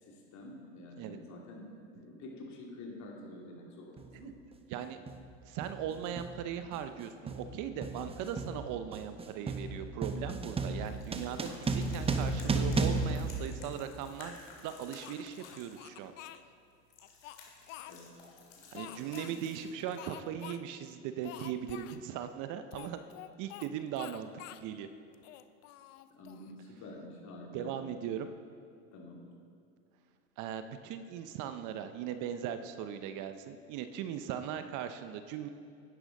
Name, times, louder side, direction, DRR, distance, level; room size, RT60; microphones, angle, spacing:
voice 1, 0.0-4.4 17.9-18.2 18.6-19.4 26.1-27.7 28.9-29.3, left 1 dB, 45° left, -1 dB, 2.6 m, -48 dB
sound 1, 4.0-4.1 5.1-5.3 5.6-14.2, right 3 dB, 15° right, 0.7 m, -34 dB
voice 2, 5.5-14.4 14.6-16.1 18.7-23.0 23.4-24.9 27.5-28.3 30.4-35.5, right 9 dB, 50° right, 10 dB, 0.7 m, -39 dB
sound 2, 10.0-20.3, left 4 dB, 90° left, 2.3 m, -55 dB
Speech, 15.0-16.4 17.0-18.3 18.8-19.4 20.0-20.6 20.8-20.9 21.2-22.0 22.7-23.7 24.0-24.7 25.1-26.5, left 14 dB, 70° left, 0.6 m, -48 dB
10.5 x 10.0 x 3.8 m, 2.4 s
hypercardioid pair, 95°, 38 cm